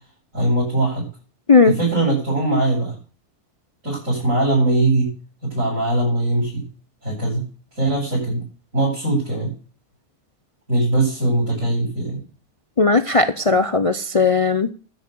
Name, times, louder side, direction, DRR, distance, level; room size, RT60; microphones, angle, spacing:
voice 1, 0.3-1.0 1.6-2.9 3.8-5.1 5.4-6.6 7.0-7.4 7.7-8.4 8.7-9.5 10.7-12.2, right 2 dB, 50° right, -7 dB, 8.5 m, -21 dB
voice 2, 12.8-14.7, left 4 dB, 55° left, 11 dB, 0.3 m, -16 dB
13.0 x 8.0 x 6.9 m, 0.38 s
omnidirectional pair, 1.7 m